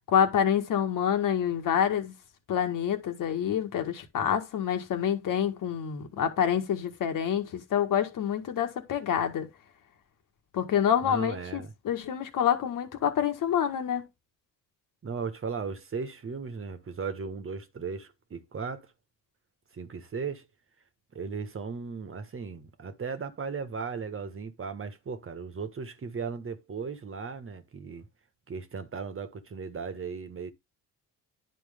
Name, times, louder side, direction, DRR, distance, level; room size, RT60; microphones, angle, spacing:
voice 1, 0.1-2.1 2.5-9.5 10.5-14.1, left 9 dB, 65° left, 1.9 m, -27 dB
voice 2, 11.0-11.7 15.0-18.9 19.7-20.5 21.1-28.1 28.5-30.5, right 5 dB, 40° right, 1.5 m, -36 dB
10.0 x 4.6 x 3.6 m
supercardioid pair, 75°, 35 cm